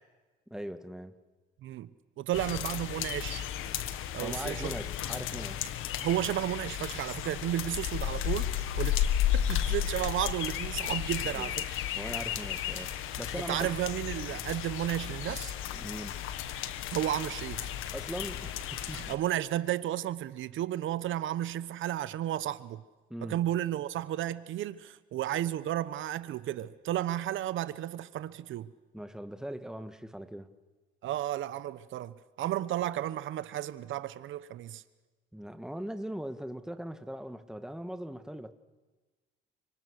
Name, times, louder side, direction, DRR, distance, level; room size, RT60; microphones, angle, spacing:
voice 1, 0.5-1.2 4.2-5.7 11.3-11.5 12.0-13.7 15.7-16.2 17.9-19.0 23.1-23.4 28.9-30.5 35.3-38.5, equal, 5° right, 1.9 m, -40 dB
voice 2, 2.2-3.5 4.1-4.7 6.0-9.0 9.3-11.7 13.5-15.5 16.9-17.6 18.9-22.8 23.2-28.7 31.0-34.8, right 12 dB, 75° right, 1.0 m, -33 dB
sound 1, 2.3-19.1, left 11 dB, 90° left, 1.8 m, -33 dB
29.0 x 25.5 x 6.6 m
cardioid pair, 90°, 20 cm